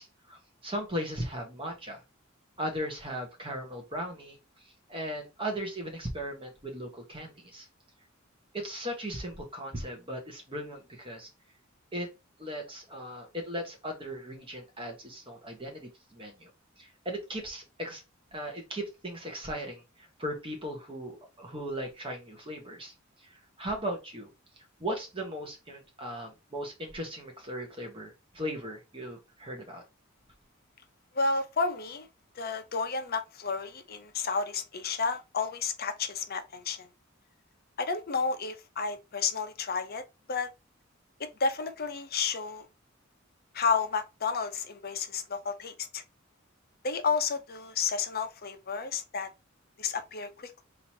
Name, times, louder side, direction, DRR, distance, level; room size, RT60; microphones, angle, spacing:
voice 1, 0.0-2.0 2.6-4.4 4.9-7.7 8.5-11.3 11.9-12.1 12.4-16.5 16.8-18.0 18.3-22.9 23.3-24.3 24.8-29.8, equal, 25° right, 1.4 m, -37 dB
voice 2, 31.1-32.1 32.3-36.9 37.8-40.0 40.3-40.5 41.4-42.7 43.5-46.0 46.8-49.3 49.8-50.6, left 5 dB, 50° left, 0.8 m, -31 dB
4.0 x 2.8 x 4.6 m
head